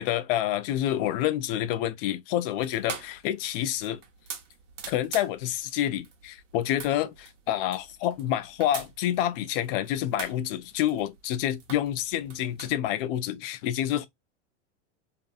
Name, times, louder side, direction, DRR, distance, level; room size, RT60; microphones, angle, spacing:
voice 1, 0.0-4.0 4.9-14.1, left 12 dB, 50° left, 0.5 m, -28 dB
sound 1, 2.6-12.8, right 7 dB, 90° right, 0.9 m, -44 dB
2.6 x 2.5 x 2.3 m
supercardioid pair, 135°, 36 cm